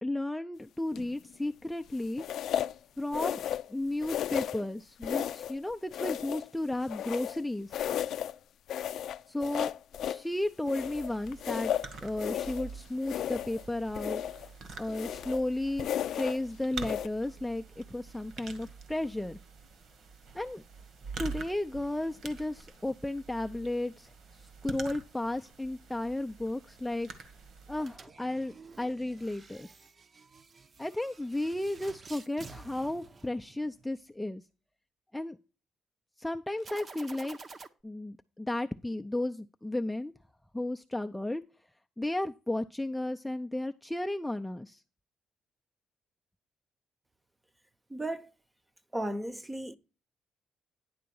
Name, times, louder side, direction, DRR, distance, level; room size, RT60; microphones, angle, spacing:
voice 1, 0.0-2.2 3.0-3.4 3.7-7.7 9.3-9.7 10.0-11.7 12.0-14.2 14.8-19.4 20.3-20.6 21.2-24.1 24.6-27.1 27.7-29.7 30.8-34.4 35.1-35.4 36.2-37.4 37.8-40.1 40.5-41.4 42.0-44.8, left 1 dB, 5° left, 0.5 m, -34 dB
sound 1, 0.9-1.3 2.2-2.8 3.1-3.7 4.0-4.7 5.0-5.6 5.9-7.4 7.7-8.3 8.7-10.3 10.7-12.7 13.0-13.6 13.9-14.5 14.9-15.4 15.8-16.4 16.8-17.1, left 10 dB, 70° left, 0.4 m, -34 dB
sound 2, 10.8-28.0, right 4 dB, 65° right, 1.6 m, -46 dB
sound 3, 27.8-33.9 36.6-37.7, right 4 dB, 40° right, 0.8 m, -50 dB
voice 2, 47.9-48.3 48.9-49.8, right 1 dB, 15° right, 0.9 m, -35 dB
10.5 x 3.7 x 7.0 m
cardioid pair, 90°, 0 cm